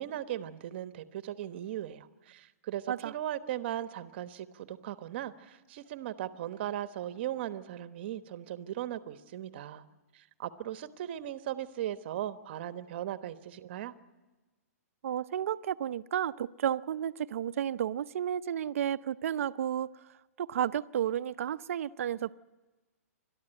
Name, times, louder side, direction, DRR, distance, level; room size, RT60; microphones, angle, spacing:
voice 1, 0.0-9.8 10.1-13.9, right 12 dB, 40° right, 12 dB, 1.1 m, -38 dB
voice 2, 15.0-22.3, right 10 dB, 55° right, 14 dB, 0.7 m, -32 dB
30.0 x 13.0 x 9.0 m, 1.2 s
hypercardioid pair, 160°, 9 cm